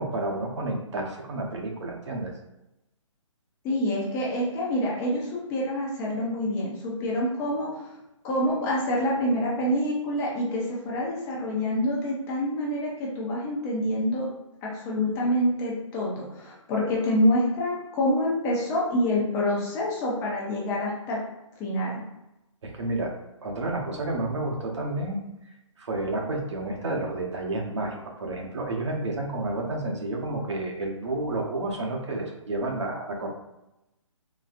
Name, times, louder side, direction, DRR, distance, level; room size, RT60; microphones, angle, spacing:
voice 1, 0.0-2.3 22.6-23.1 23.4-25.2 25.8-33.3, right 2 dB, 60° right, 0 dB, 0.8 m, -30 dB
voice 2, 3.6-7.8 8.2-14.3 14.6-21.2 21.6-21.9, left 1 dB, 15° left, -5 dB, 0.6 m, -26 dB
3.9 x 2.0 x 2.5 m, 0.93 s
figure-of-eight pair, 145°, 17 cm